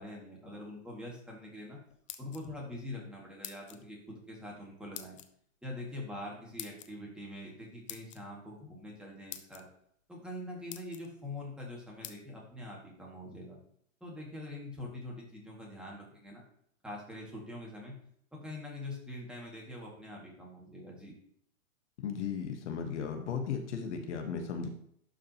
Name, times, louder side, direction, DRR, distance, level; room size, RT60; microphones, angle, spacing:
voice 1, 0.0-1.8 2.2-5.2 5.6-9.7 10.1-13.6 14.0-16.4 16.8-17.9 18.3-21.1, left 1 dB, ahead, -3 dB, 1.9 m, -44 dB
sound 1, 1.9-2.7 3.4-3.8 4.9-5.3 6.6-6.9 7.9-8.2 8.9-9.0 9.3-9.6 10.2-10.3 10.7-11.1 12.0-12.2, left 11 dB, 25° left, 0.3 m, -45 dB
voice 2, 22.0-24.7, left 6 dB, 60° left, 4 dB, 1.3 m, -36 dB
11.5 x 5.1 x 2.9 m, 0.67 s
hypercardioid pair, 125°, 40 cm